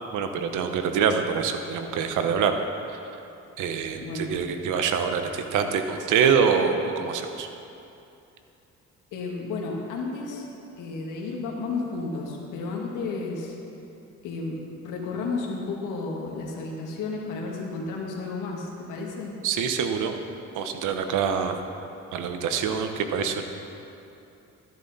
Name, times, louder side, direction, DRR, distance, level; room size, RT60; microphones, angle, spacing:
voice 1, 0.1-2.6 2.9-3.0 3.6-7.5 19.4-20.1 20.5-21.5 22.1-23.4, right 6 dB, 85° right, 6 dB, 1.0 m, -25 dB
voice 2, 4.0-4.4 9.1-10.4 10.8-13.6 14.2-19.4, left 3 dB, 90° left, -1 dB, 1.7 m, -32 dB
13.0 x 10.5 x 4.1 m, 2.8 s
cardioid pair, 90°, 30 cm